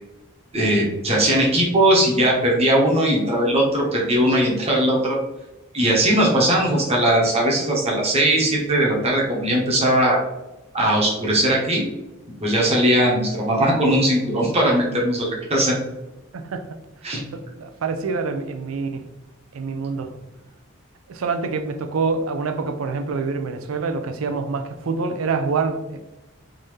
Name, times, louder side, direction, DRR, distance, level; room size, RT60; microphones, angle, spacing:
voice 1, 0.5-5.2 5.7-10.2 10.7-11.8 12.4-15.7 17.0-17.2, right 1 dB, 30° right, 1.0 m, -19 dB
voice 2, 16.3-16.7 17.3-19.1 19.5-20.2 21.1-26.0, right 4 dB, 80° right, 0.4 m, -26 dB
3.8 x 2.6 x 3.2 m
head